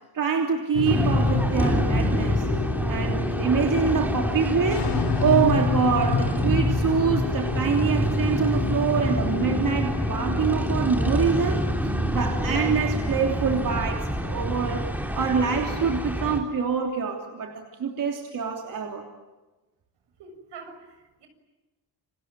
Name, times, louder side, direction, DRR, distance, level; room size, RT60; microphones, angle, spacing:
voice 1, 0.1-2.5 2.9-4.9 5.2-11.6 12.1-14.9 15.1-19.0, right 6 dB, 50° right, 2 dB, 3.3 m, -25 dB
sound 1, 0.7-15.4, left 6 dB, 70° left, 5.1 m, -30 dB
sound 2, 0.8-16.4, equal, 5° right, 3.0 m, -27 dB
voice 2, 20.2-21.3, right 4 dB, 80° right, 7 dB, 7.1 m, -45 dB
29.0 x 26.5 x 7.6 m, 1.1 s
wide cardioid pair, 160°, 41 cm